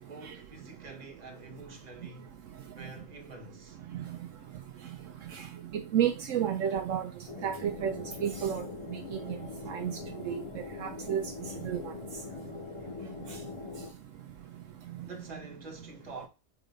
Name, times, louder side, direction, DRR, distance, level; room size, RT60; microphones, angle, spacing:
voice 1, 0.1-2.4 2.7-3.8 15.0-16.3, right 3 dB, 30° right, 1.3 m, -46 dB
voice 2, 5.7-7.1 7.4-7.9 8.2-8.6 9.1-9.4 9.7-9.9 10.2-10.4 10.8-11.2 11.6-11.8, right 9 dB, 75° right, 1.0 m, -30 dB
sound 1, 7.3-13.9, left 4 dB, 40° left, 0.5 m, -42 dB
4.8 x 4.0 x 5.0 m
omnidirectional pair, 1.4 m